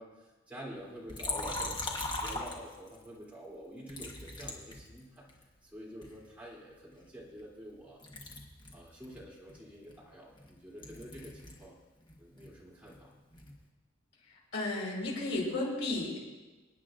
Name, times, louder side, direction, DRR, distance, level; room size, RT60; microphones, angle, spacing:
voice 1, 0.0-5.3 5.6-8.0 8.7-11.8 12.2-13.2, equal, 5° right, -6 dB, 3.1 m, -48 dB
Liquid, 1.1-3.1 3.9-5.4 6.0-7.8 8.0-11.7 12.0-13.6, left 2 dB, 20° left, 1.3 m, -41 dB
voice 2, 14.5-16.2, left 2 dB, 70° left, -5 dB, 4.7 m, -33 dB
27.5 x 9.5 x 2.6 m, 1.2 s
head